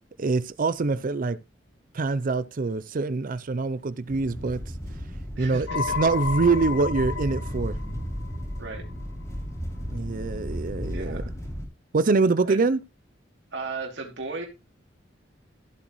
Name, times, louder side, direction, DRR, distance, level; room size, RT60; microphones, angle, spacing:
voice 1, 0.2-1.4 1.9-4.6 5.4-7.8 9.9-11.2 11.9-12.8, right 3 dB, 45° right, 0.5 m, -24 dB
sound 1, 4.1-11.7, equal, 15° left, 3.3 m, -34 dB
voice 2, 5.4-5.8 8.6-8.8 10.9-11.3 12.4-12.6 13.5-14.5, right 4 dB, 70° right, 2.8 m, -35 dB
sound 2, 5.7-9.0, left 6 dB, 70° left, 0.9 m, -32 dB
14.5 x 7.9 x 3.1 m
head